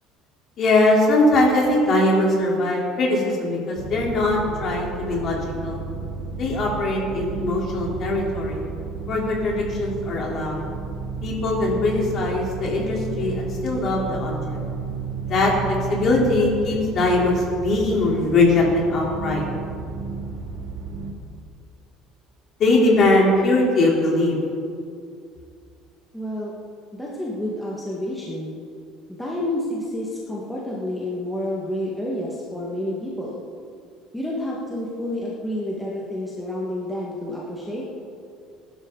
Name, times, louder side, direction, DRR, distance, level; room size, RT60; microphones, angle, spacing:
voice 1, 0.6-5.8 6.4-8.7 9.1-10.7 11.2-14.6 15.3-19.5 22.6-24.4, left 2 dB, 35° left, -2 dB, 3.5 m, -21 dB
sound 1, 3.7-21.1, right 4 dB, 60° right, 2.5 m, -32 dB
voice 2, 26.1-26.5 26.9-28.5 29.1-33.4 34.1-37.8, left 1 dB, 5° left, -6 dB, 1.6 m, -29 dB
20.5 x 12.0 x 3.9 m, 2.4 s
cardioid pair, 165°, 0 cm